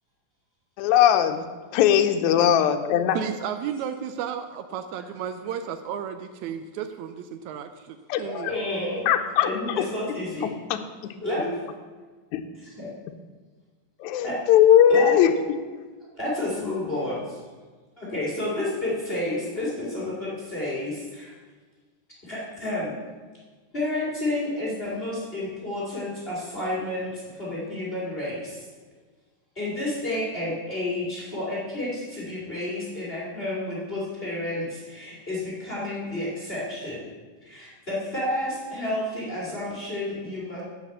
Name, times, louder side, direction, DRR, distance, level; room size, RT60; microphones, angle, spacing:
voice 1, 0.8-1.4 1.7-3.2 8.1-8.5 9.1-9.5 10.7-10.8 12.3-12.4 14.0-15.3, left 10 dB, 75° left, 6 dB, 1.8 m, -19 dB
voice 2, 3.1-8.5, right 8 dB, 85° right, 8 dB, 1.6 m, -33 dB
voice 3, 8.4-9.1 9.4-10.5 11.2-11.5 12.5-12.9 14.2-14.4 14.9-15.1 16.1-17.4 18.0-21.4 22.2-22.9 23.7-28.7 29.6-37.1 37.4-40.6, left 1 dB, 20° left, -6 dB, 2.0 m, -30 dB
7.8 x 7.5 x 6.6 m, 1.4 s
omnidirectional pair, 3.9 m